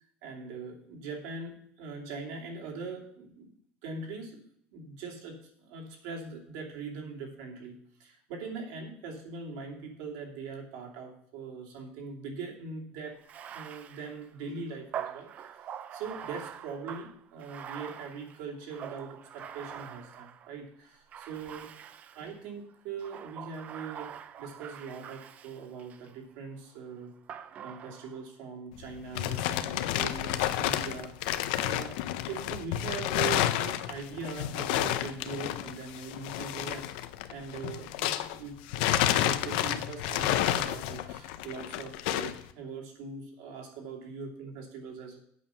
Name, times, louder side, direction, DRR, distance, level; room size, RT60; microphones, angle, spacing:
voice 1, 0.0-3.5 3.8-4.4 4.7-13.2 13.5-15.6 15.9-21.7 22.1-27.1 27.6-32.0 32.3-36.9 37.3-38.6 39.1-45.2, right 4 dB, 70° right, 0 dB, 2.5 m, -41 dB
Bathtub (filling or washing), 13.2-20.6 21.1-22.4 23.0-26.1 27.3-28.3, right 9 dB, 30° right, 0.4 m, -44 dB
sound 1, 28.8-38.4 38.7-42.4, left 13 dB, 85° left, 0.6 m, -30 dB
8.2 x 7.2 x 5.6 m, 0.66 s
cardioid pair, 175°, 5 cm